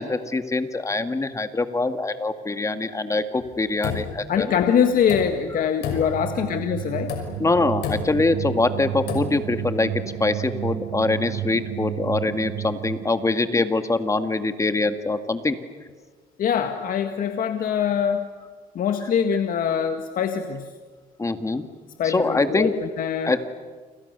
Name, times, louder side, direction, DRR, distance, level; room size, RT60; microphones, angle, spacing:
voice 1, 0.0-4.5 7.4-9.9 10.2-15.6 21.2-21.6 22.0-22.7 23.2-23.4, left 3 dB, 20° left, 9 dB, 2.0 m, -24 dB
sound 1, 3.4-4.6 5.0-5.6 5.8-6.5 7.0-7.5 7.8-8.3 9.0-9.5, left 7 dB, 80° left, 6.1 m, -31 dB
voice 2, 4.3-7.2 16.4-18.3 18.8-20.7 22.0-23.3, left 8 dB, 55° left, 6 dB, 1.8 m, -23 dB
sound 2, 6.0-13.4, right 15 dB, 70° right, 0.8 m, -32 dB
29.5 x 27.5 x 6.8 m, 1.5 s
cardioid pair, 110°, 17 cm